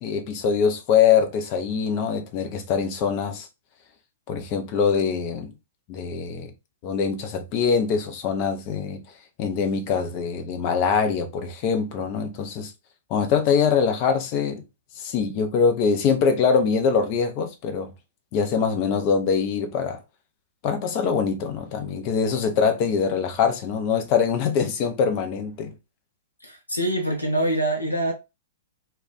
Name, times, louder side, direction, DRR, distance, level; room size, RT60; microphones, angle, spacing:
voice 1, 0.0-3.5 4.3-5.5 5.9-6.5 6.8-9.0 9.4-12.7 13.1-14.6 15.0-17.9 18.3-20.0 20.6-25.7, left 6 dB, 35° left, 0.6 m, -23 dB
voice 2, 26.4-28.1, right 1 dB, 85° left, 0.7 m, -25 dB
2.5 x 2.2 x 4.0 m
figure-of-eight pair, 110°, 0 cm